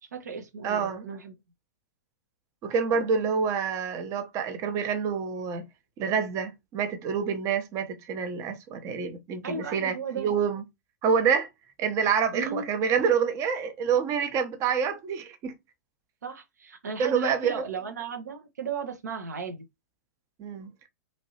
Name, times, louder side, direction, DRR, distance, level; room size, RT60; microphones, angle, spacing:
voice 1, 0.0-1.3 9.4-10.3 12.3-12.7 13.0-13.1 16.2-19.7, right 5 dB, 75° right, 0.6 m, -35 dB
voice 2, 0.6-1.0 2.6-5.6 6.0-10.6 11.0-11.5 11.8-15.5 17.0-17.6 20.4-20.7, right 6 dB, 35° right, 0.7 m, -27 dB
3.0 x 2.5 x 2.8 m
figure-of-eight pair, 105°, 9 cm